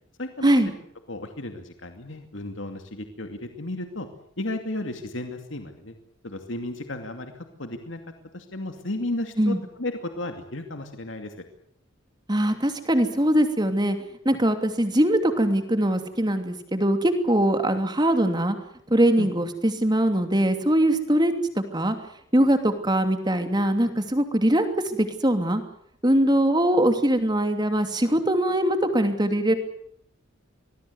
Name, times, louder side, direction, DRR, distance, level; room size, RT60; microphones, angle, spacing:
voice 1, 0.2-0.7 1.1-4.1 4.4-6.0 6.2-8.0 8.3-11.3 19.2-19.3, left 1 dB, 70° left, 6 dB, 2.5 m, -33 dB
voice 2, 12.3-14.0 14.2-18.6 18.9-22.0 22.3-25.6 26.0-29.5, right 1 dB, 20° right, 7 dB, 2.8 m, -22 dB
25.0 x 20.0 x 8.1 m, 0.70 s
head